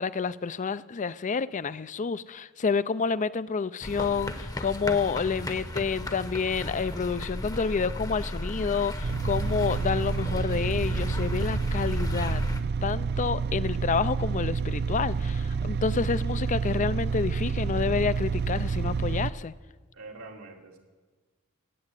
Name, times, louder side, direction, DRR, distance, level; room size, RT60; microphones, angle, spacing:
voice 1, 0.0-12.4 12.8-19.5, left 5 dB, 35° left, 17 dB, 0.4 m, -29 dB
sound 1, 3.8-12.6, left 1 dB, 15° left, 0.9 m, -34 dB
sound 2, 9.0-19.3, right 5 dB, 50° right, 0.4 m, -29 dB
voice 2, 19.9-20.8, right 3 dB, 85° right, 1 dB, 2.4 m, -45 dB
19.0 x 8.7 x 8.3 m, 1.4 s
head